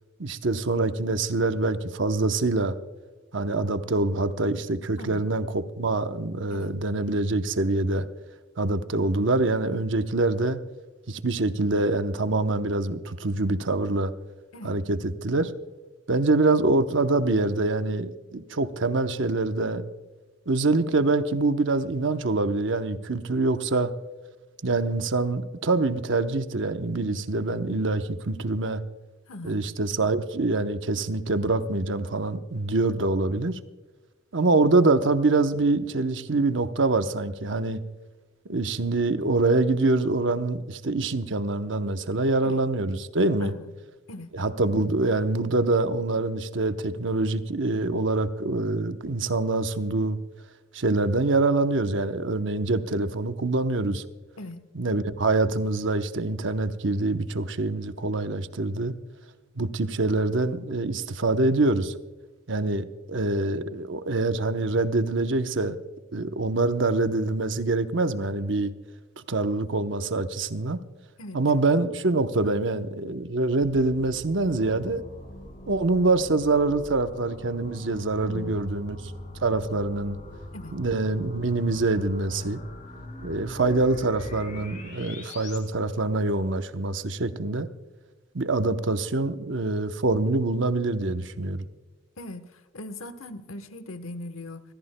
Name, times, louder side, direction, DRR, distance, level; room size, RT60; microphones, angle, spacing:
voice 1, 0.2-2.8 3.3-8.1 8.6-10.6 11.1-14.1 14.6-15.5 16.1-19.9 20.5-23.9 24.6-28.8 29.4-33.6 34.3-37.8 38.5-43.5 44.3-50.2 50.7-54.0 54.7-58.9 59.6-61.9 62.5-65.8 66.1-68.7 69.2-70.8 71.3-75.0 75.7-79.0 79.4-80.2 80.7-82.6 83.2-87.7 88.3-91.7, right 2 dB, 65° right, 0.8 m, -25 dB
voice 2, 5.0-5.3 6.5-6.7 14.5-14.8 29.3-29.6 42.4-42.6 43.4-43.7 44.1-44.3 54.4-54.6 71.2-72.0 72.4-72.5 78.2-78.6 80.5-80.7 92.2-94.6, left 2 dB, 90° left, 1.1 m, -40 dB
sound 1, 73.6-85.6, left 1 dB, 40° left, 3.1 m, -42 dB
26.5 x 15.5 x 2.2 m
head